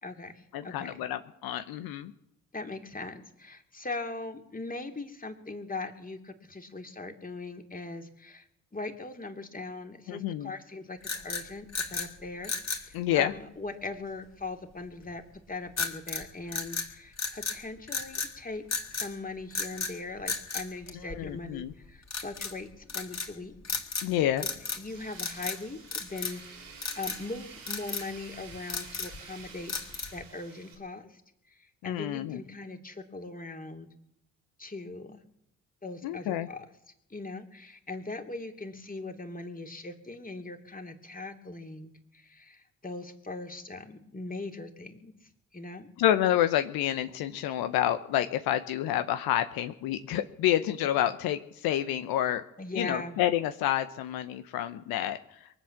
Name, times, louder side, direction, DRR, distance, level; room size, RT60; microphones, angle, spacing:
voice 1, 0.0-1.0 2.5-8.4 8.7-11.0 11.2-15.2 15.5-18.6 18.9-23.5 24.8-29.7 30.1-31.2 31.5-33.9 34.6-35.2 35.8-36.6 37.1-45.1 45.5-45.9 52.6-53.2, left 3 dB, 20° left, 5 dB, 2.8 m, -40 dB
voice 2, 0.5-2.1 10.1-10.5 12.9-13.3 21.1-21.7 24.0-24.4 31.8-32.4 36.0-36.5 46.0-52.4 52.7-55.5, left 12 dB, 70° left, 10 dB, 0.9 m, -28 dB
sound 1, 11.0-12.1 12.4-12.9 15.8-16.2 16.5-17.6 17.9-18.3 18.7-19.1 19.5-19.9 20.3-21.4 22.1-22.5 22.9-23.3 23.6-24.1 24.4-24.9 25.1-25.6 25.9-26.4 26.8-27.2 27.7-28.1 28.5-29.2 29.7-30.2, left 4 dB, 45° left, 3.6 m, -34 dB
Tools, 24.9-30.8, right 5 dB, 90° right, 3.2 m, -49 dB
23.0 x 8.2 x 7.2 m, 0.80 s
hypercardioid pair, 45°, 37 cm